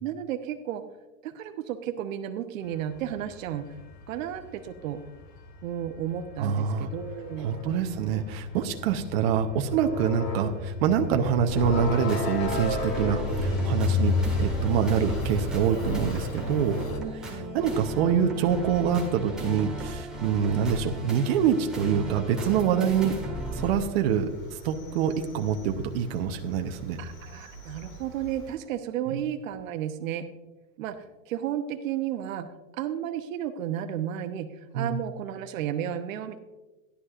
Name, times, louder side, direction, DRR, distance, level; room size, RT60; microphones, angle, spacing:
voice 1, 0.0-0.8 1.2-3.7 4.1-5.0 5.6-8.2 17.0-17.6 27.0-30.3 30.8-31.0 31.3-32.5 32.8-36.4, right 10 dB, 80° right, 8 dB, 1.0 m, -33 dB
sound 1, 2.7-17.0, left 3 dB, 90° left, 2.4 m, -32 dB
voice 2, 6.4-6.9 7.4-16.8 17.5-23.2 23.5-27.0 29.1-29.2 34.7-35.0, right 7 dB, 50° right, 5 dB, 0.9 m, -26 dB
sound 2, 11.5-23.8, right 1 dB, ahead, 1.8 m, -35 dB
Cricket, 23.4-28.6, right 1 dB, 30° left, 2.1 m, -47 dB
14.0 x 11.5 x 2.5 m, 1.1 s
supercardioid pair, 175°, 39 cm